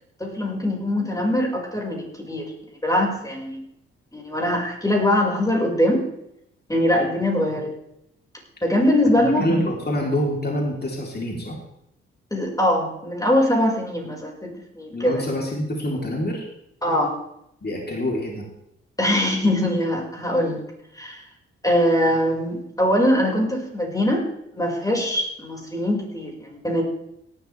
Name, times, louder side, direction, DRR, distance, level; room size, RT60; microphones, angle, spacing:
voice 1, 0.2-2.5 2.8-3.6 4.1-6.0 6.7-7.7 8.6-9.7 12.3-15.2 16.8-17.1 19.0-20.6 21.0-21.2 21.6-24.2 24.5-26.8, left 1 dB, 10° left, -1 dB, 5.3 m, -22 dB
voice 2, 9.2-11.6 14.9-16.4 17.6-18.4, left 1 dB, 30° left, 0 dB, 3.5 m, -26 dB
18.0 x 12.0 x 3.4 m, 0.80 s
hypercardioid pair, 40°, 33 cm